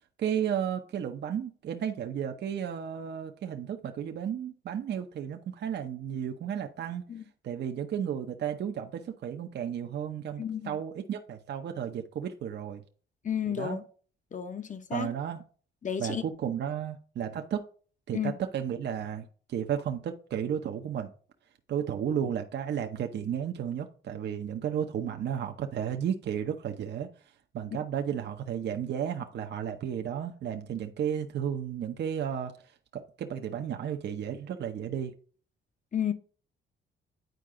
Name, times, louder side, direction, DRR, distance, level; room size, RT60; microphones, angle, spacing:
voice 1, 0.2-7.0 7.4-12.8 13.6-13.8 14.9-15.4 16.0-17.6 18.1-21.1 21.7-27.1 27.5-32.5 32.9-35.1, right 9 dB, 60° right, 0.8 m, -33 dB
voice 2, 10.4-10.8 13.2-13.8 14.3-15.1 15.8-16.2 18.1-18.3 35.9-36.1, left 8 dB, 40° left, 1.0 m, -32 dB
9.3 x 4.6 x 3.7 m
cardioid pair, 90°, 20 cm